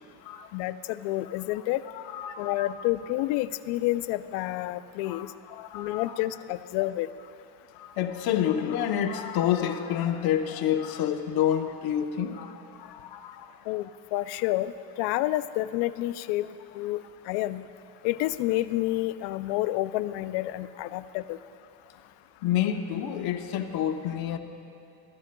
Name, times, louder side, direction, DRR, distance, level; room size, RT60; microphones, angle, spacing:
voice 1, 0.5-1.8 2.4-5.3 5.7-7.1 13.7-14.7 15.0-16.5 16.7-17.7 18.0-21.4, left 16 dB, 85° left, 14 dB, 0.5 m, -29 dB
voice 2, 1.9-2.9 5.0-6.2 7.7-13.5 22.4-24.4, left 10 dB, 65° left, 6 dB, 0.9 m, -29 dB
21.5 x 13.0 x 2.2 m, 2.9 s
cardioid pair, 165°, 40 cm